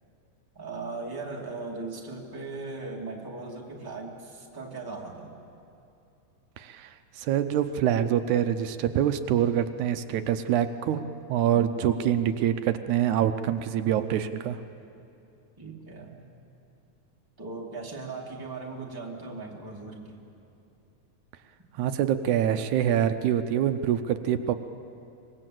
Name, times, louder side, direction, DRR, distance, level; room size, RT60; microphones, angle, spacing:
voice 1, 0.5-5.3 15.6-16.2 17.4-20.2, right 3 dB, 10° right, -1 dB, 2.0 m, -38 dB
voice 2, 6.6-11.0 11.3-14.6 21.8-24.5, right 10 dB, 80° right, 9 dB, 2.1 m, -25 dB
25.0 x 21.0 x 7.7 m, 2.7 s
omnidirectional pair, 3.5 m